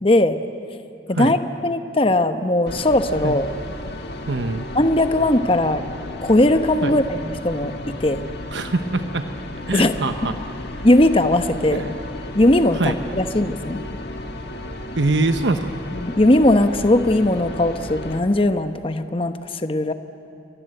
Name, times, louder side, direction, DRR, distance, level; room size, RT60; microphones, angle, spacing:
voice 1, 0.0-0.4 1.1-1.4 1.6-3.4 4.7-5.8 6.2-8.2 9.7-9.9 10.8-11.9 12.3-13.8 15.9-19.9, left 1 dB, 30° left, 9 dB, 1.0 m, -19 dB
sound 1, 2.7-18.2, left 1 dB, 65° left, 2.1 m, -34 dB
voice 2, 4.3-4.7 6.8-6.9 8.5-9.3 9.7-10.4 11.7-11.9 12.7-12.9 15.0-15.7, right 3 dB, 85° right, 7 dB, 1.0 m, -23 dB
29.0 x 24.0 x 7.9 m, 2.6 s
head